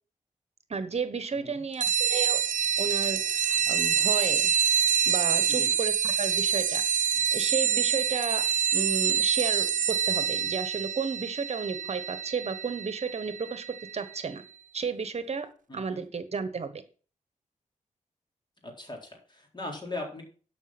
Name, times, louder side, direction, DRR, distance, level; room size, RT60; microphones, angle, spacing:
voice 1, 0.7-2.4 2.8-4.5 5.0-14.4 14.7-16.8, right 5 dB, 50° right, 11 dB, 1.2 m, -33 dB
voice 2, 1.3-1.6 5.5-5.7 15.7-16.1 18.6-20.2, left 2 dB, 35° left, 1 dB, 4.1 m, -39 dB
sound 1, 1.8-13.9, right 8 dB, 75° right, 0.6 m, -26 dB
12.0 x 5.9 x 6.1 m, 0.40 s
wide cardioid pair, 85°, 13 cm